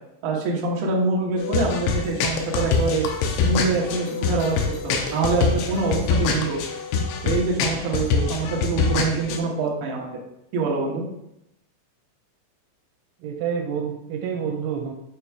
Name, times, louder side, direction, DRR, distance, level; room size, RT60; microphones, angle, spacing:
voice 1, 0.2-3.1 3.4-4.6 4.8-6.6 7.2-10.1 10.5-11.0, right 3 dB, 65° right, -2 dB, 3.0 m, -25 dB
sound 1, 1.4-9.4, left 5 dB, 85° left, 3.2 m, -24 dB
voice 2, 13.2-14.9, right 7 dB, 90° right, 2 dB, 3.3 m, -28 dB
9.0 x 4.6 x 3.5 m, 0.84 s
omnidirectional pair, 5.4 m